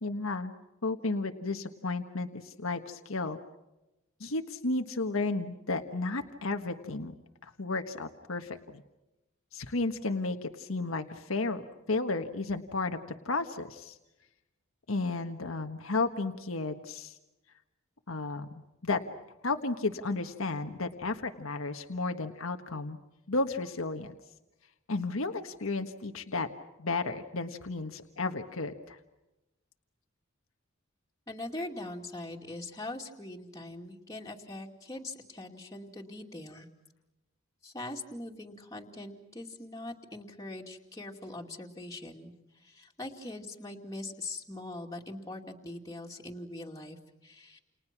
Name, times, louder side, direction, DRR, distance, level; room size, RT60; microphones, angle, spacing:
voice 1, 0.0-0.5 0.8-3.4 4.2-7.2 7.4-8.8 9.5-11.6 11.9-13.0 13.2-14.0 14.9-17.1 18.1-19.0 19.4-23.0 23.3-24.2 24.9-26.5 26.8-29.0, left 3 dB, 85° left, 6 dB, 1.4 m, -33 dB
voice 2, 31.3-36.7 37.6-47.6, left 2 dB, 15° left, -1 dB, 2.5 m, -42 dB
29.5 x 29.5 x 6.1 m, 0.98 s
head